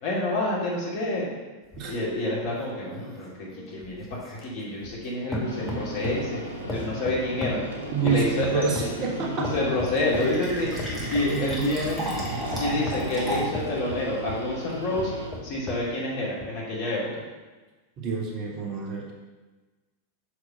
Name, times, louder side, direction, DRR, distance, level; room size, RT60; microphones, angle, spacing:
voice 1, 0.0-1.2 1.8-6.4 6.7-7.6 8.0-12.0 12.6-15.1 15.4-17.1, left 2 dB, 50° left, -5 dB, 2.5 m, -28 dB
sound 1, 1.7-5.1 5.3-6.3 6.7-9.0 9.4-10.4 10.8-11.7 12.2-14.5 14.9-15.9 16.4-16.5, left 1 dB, 15° left, 1.4 m, -36 dB
sound 2, 5.4-15.3, right 1 dB, 75° right, 2.0 m, -36 dB
voice 2, 7.9-9.5 11.3-11.7 18.0-19.1, right 5 dB, 35° right, 0 dB, 1.3 m, -28 dB
Fill (with liquid), 9.7-13.7, right 1 dB, 10° right, 2.0 m, -33 dB
6.2 x 4.9 x 5.2 m, 1.2 s
figure-of-eight pair, 90°, 0 cm